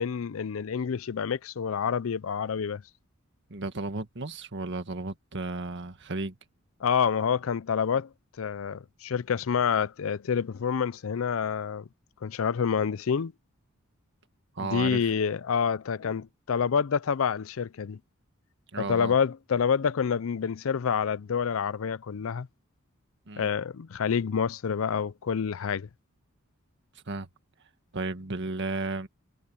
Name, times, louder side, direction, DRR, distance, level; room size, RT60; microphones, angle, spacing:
voice 1, 0.0-2.8 6.8-8.1 8.4-11.9 12.2-13.3 14.6-18.0 18.8-22.5 23.4-25.9, left 6 dB, 70° left, 0.5 m, -28 dB
voice 2, 3.5-6.4 14.6-15.1 18.7-19.1 23.3-23.5 27.1-27.3 27.9-29.1, right 3 dB, 60° right, 1.7 m, -34 dB
head